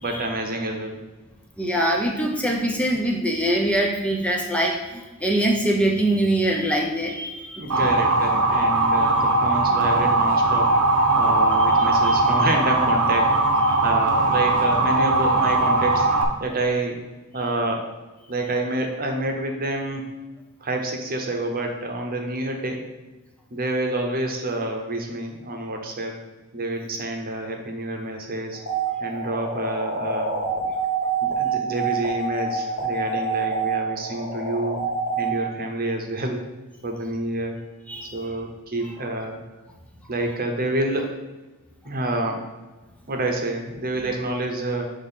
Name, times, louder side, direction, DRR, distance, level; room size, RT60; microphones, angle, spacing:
voice 1, 0.0-1.0 7.6-16.1 16.4-17.0 17.3-17.9 18.3-20.1 20.6-22.9 23.5-26.2 26.5-28.6 29.0-30.3 31.2-34.8 35.2-36.5 36.8-37.6 38.0-39.4 40.1-41.1 41.8-42.5 43.1-44.8, right 2 dB, 45° right, 3 dB, 0.9 m, -28 dB
voice 2, 1.6-7.9 9.6-9.7 11.6-12.1 37.9-38.1, right 1 dB, 5° left, 0 dB, 0.6 m, -24 dB
Motor vehicle (road) / Siren, 7.7-16.2, right 2 dB, 80° right, 0.8 m, -20 dB
sound 1, 28.5-35.3, right 4 dB, 90° left, 1.8 m, -27 dB
6.0 x 3.1 x 5.7 m, 1.2 s
head